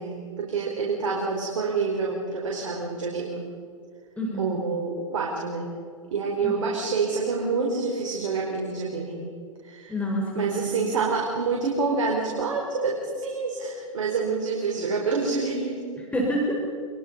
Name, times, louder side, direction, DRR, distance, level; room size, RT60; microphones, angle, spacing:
voice 1, 0.0-3.4 4.4-5.7 6.1-9.3 9.6-9.9 10.3-16.1, right 4 dB, 70° right, -1 dB, 4.4 m, -27 dB
voice 2, 9.9-10.7 16.1-16.5, equal, 5° left, -1 dB, 4.7 m, -27 dB
26.0 x 22.5 x 5.5 m, 2.3 s
hypercardioid pair, 110°, 17 cm